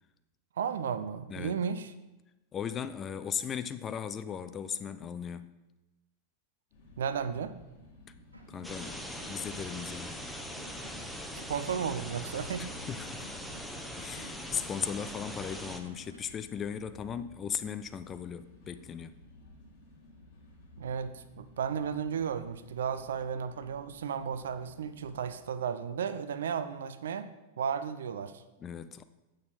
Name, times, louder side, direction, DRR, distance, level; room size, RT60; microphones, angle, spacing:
voice 1, 0.6-1.9 7.0-7.6 11.5-12.7 20.8-27.3 27.6-28.4, right 7 dB, 65° right, 12 dB, 0.5 m, -34 dB
voice 2, 1.3-1.6 2.5-5.5 8.5-10.2 12.6-13.3 14.0-19.1 28.6-29.0, left 7 dB, 25° left, 12 dB, 0.5 m, -37 dB
sound 1, 6.7-25.3, left 2 dB, 45° left, 2.4 m, -54 dB
sound 2, 8.3-16.2, right 1 dB, 80° right, 1.2 m, -54 dB
sound 3, 8.6-15.8, equal, ahead, 0.8 m, -41 dB
8.4 x 6.5 x 4.1 m, 1.0 s
figure-of-eight pair, 90°, 0 cm